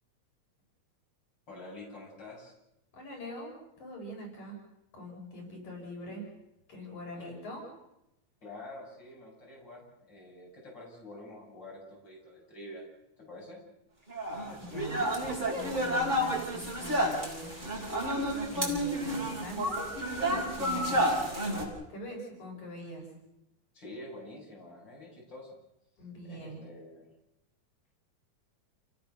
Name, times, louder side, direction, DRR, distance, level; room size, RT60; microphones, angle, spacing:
voice 1, 1.5-2.5 7.2-7.5 8.4-12.9 13.2-13.6 20.7-21.4 23.7-25.6 26.2-27.1, left 1 dB, 35° left, -3 dB, 8.4 m, -47 dB
voice 2, 2.9-4.6 4.9-6.3 6.7-7.6 14.6-17.5 18.5-19.9 20.2-21.0 21.3-21.6 21.9-23.1 26.0-26.6, equal, 80° left, -1 dB, 7.4 m, -43 dB
sound 1, 14.1-21.7, equal, 15° right, 5.6 m, -30 dB
29.5 x 18.0 x 6.5 m, 0.87 s
omnidirectional pair, 3.3 m